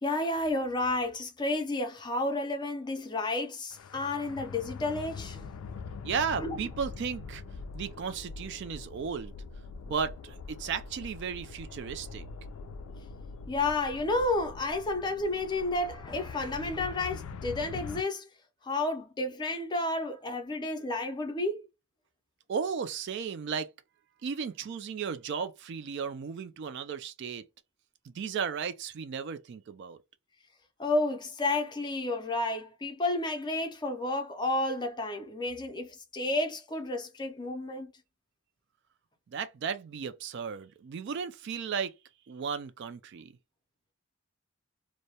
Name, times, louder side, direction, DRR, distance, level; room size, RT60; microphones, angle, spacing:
voice 1, 0.0-5.5 6.4-6.6 13.5-18.2 18.6-21.7 30.8-37.9, left 2 dB, 20° left, 0.4 m, -31 dB
sound 1, 3.7-18.0, left 4 dB, 80° left, 0.4 m, -43 dB
voice 2, 6.0-7.4 7.7-9.3 9.8-12.2 22.5-23.7 24.2-27.4 28.1-30.0 39.3-41.9 42.3-43.3, right 6 dB, 55° right, 0.3 m, -35 dB
2.2 x 2.0 x 2.8 m
head